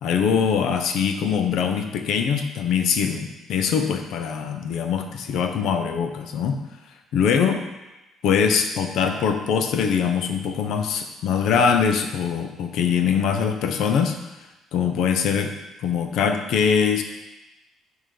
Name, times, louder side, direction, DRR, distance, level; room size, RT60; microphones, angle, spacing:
voice 1, 0.0-6.6 7.1-7.6 8.2-14.2 14.7-15.5 15.8-17.0, left 7 dB, 65° left, 6 dB, 0.6 m, -22 dB
5.5 x 4.9 x 3.8 m, 1.0 s
cardioid pair, 150°, 0 cm